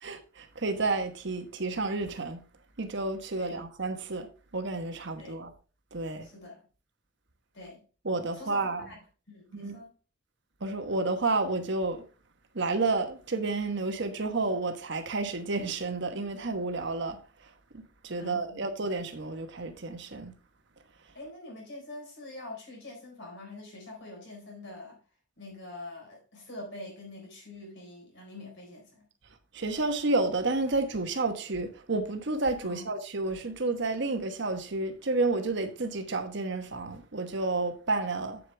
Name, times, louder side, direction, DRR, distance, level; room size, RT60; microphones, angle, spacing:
voice 1, 0.0-2.4 2.8-4.3 4.5-5.5 5.9-6.3 8.0-8.9 9.5-9.8 10.6-12.0 12.5-17.2 17.7-20.3 29.5-38.4, right 3 dB, 65° right, 1.2 m, -30 dB
voice 2, 3.3-3.6 5.2-5.4 6.2-6.6 7.5-7.8 8.3-9.0 9.3-9.9 18.2-18.6 21.1-25.0 25.4-29.1 32.6-32.9, left 2 dB, 65° left, 4.1 m, -45 dB
8.0 x 7.7 x 3.3 m
head